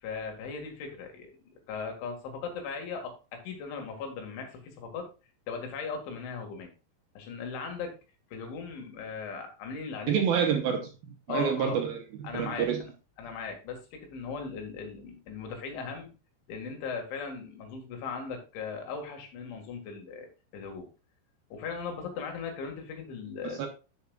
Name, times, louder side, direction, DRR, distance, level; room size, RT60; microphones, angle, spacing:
voice 1, 0.0-5.1 5.5-6.7 7.2-8.0 8.3-10.2 11.3-11.8 12.2-12.7 13.2-16.1 16.5-20.9 21.5-23.7, left 5 dB, 85° left, 4.4 m, -38 dB
voice 2, 10.1-12.8 23.4-23.7, right 7 dB, 70° right, 2.4 m, -28 dB
13.0 x 6.7 x 2.4 m
omnidirectional pair, 5.3 m